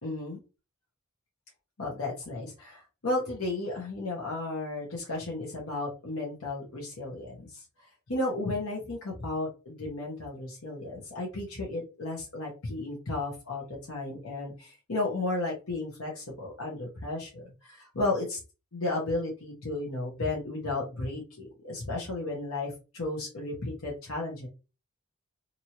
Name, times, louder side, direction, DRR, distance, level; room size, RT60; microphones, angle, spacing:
voice 1, 0.0-0.4 1.8-7.6 8.1-18.4 18.7-24.5, left 2 dB, 75° left, -2 dB, 1.0 m, -34 dB
2.9 x 2.6 x 2.8 m, 0.30 s
head